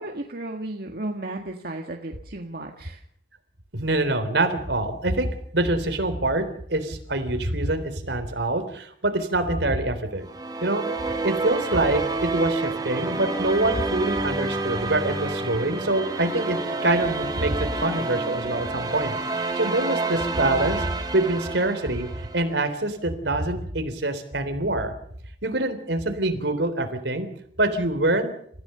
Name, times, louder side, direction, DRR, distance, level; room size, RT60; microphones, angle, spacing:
voice 1, 0.0-3.0, right 2 dB, 60° right, 2 dB, 1.9 m, -34 dB
voice 2, 3.7-5.3 5.5-10.2 10.6-10.9 11.2-22.1 22.3-24.9 25.4-27.3 27.6-28.3, right 2 dB, 80° right, 8 dB, 3.6 m, -25 dB
sound 1, 10.2-22.6, right 3 dB, 20° right, 3.0 m, -29 dB
29.0 x 15.5 x 6.8 m, 0.66 s
head